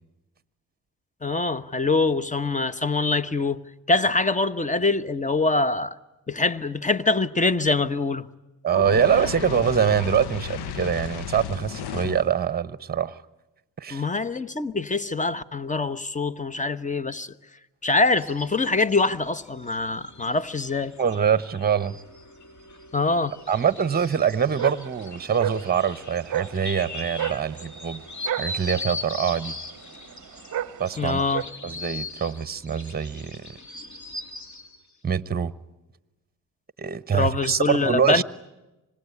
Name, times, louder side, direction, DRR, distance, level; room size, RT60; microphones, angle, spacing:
voice 1, 1.2-3.6 3.9-6.0 6.3-8.3 13.9-17.3 17.8-20.9 22.9-23.3 31.0-31.4 37.1-38.2, left 3 dB, 20° left, 1.1 m, -24 dB
voice 2, 8.6-13.2 13.8-14.0 21.0-22.0 23.5-28.0 28.4-29.6 30.8-31.2 31.6-33.4 35.0-35.5 36.8-38.2, right 7 dB, 25° right, 1.0 m, -24 dB
Fire, 8.7-12.4, left 9 dB, 70° left, 1.0 m, -33 dB
sound 1, 18.2-34.8, left 2 dB, 45° left, 3.1 m, -40 dB
sound 2, 23.5-31.4, right 11 dB, 45° right, 0.8 m, -34 dB
26.0 x 19.5 x 9.8 m
supercardioid pair, 60°, 41 cm